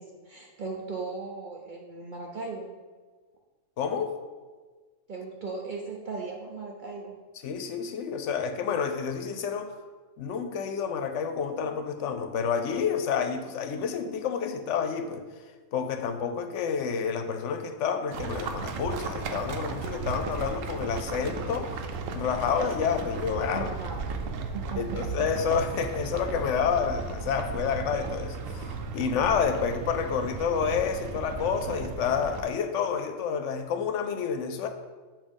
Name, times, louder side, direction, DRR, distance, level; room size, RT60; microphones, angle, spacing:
voice 1, 0.0-2.7 5.1-7.2 23.4-24.1 24.5-25.0, right 4 dB, 55° right, -1 dB, 0.6 m, -37 dB
voice 2, 3.8-4.1 7.4-9.7 10.2-15.2 15.7-21.8 22.1-23.7 24.8-34.7, left 6 dB, 70° left, 7 dB, 0.9 m, -29 dB
sound 1, 18.1-32.4, right 4 dB, 85° right, 1.0 m, -35 dB
7.2 x 2.6 x 5.2 m, 1.4 s
omnidirectional pair, 1.3 m